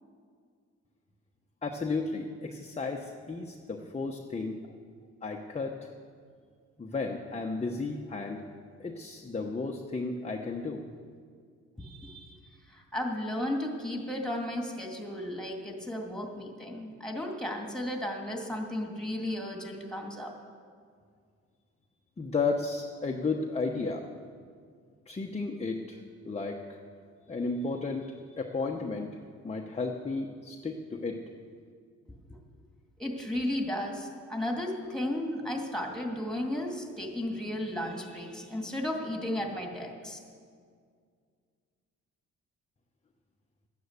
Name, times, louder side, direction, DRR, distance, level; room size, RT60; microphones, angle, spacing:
voice 1, 1.6-4.6 5.2-5.8 6.8-8.4 8.8-10.8 22.2-24.1 25.1-26.8 27.3-29.1 29.4-31.2, left 3 dB, 20° left, 1 dB, 1.0 m, -33 dB
voice 2, 11.8-12.4 12.7-20.3 33.0-40.2, left 1 dB, ahead, 1 dB, 2.5 m, -34 dB
12.5 x 9.4 x 8.1 m, 2.1 s
cardioid pair, 90°, 30 cm